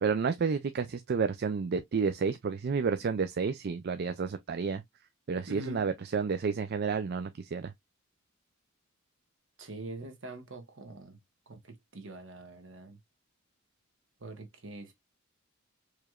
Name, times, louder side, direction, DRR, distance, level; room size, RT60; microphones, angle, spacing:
voice 1, 0.0-4.8 5.3-7.7, right 5 dB, 50° right, 0.4 m, -30 dB
voice 2, 5.5-5.9 9.6-11.2 11.5-13.0 14.2-14.9, right 1 dB, 65° right, 1.3 m, -44 dB
4.7 x 3.1 x 2.3 m
head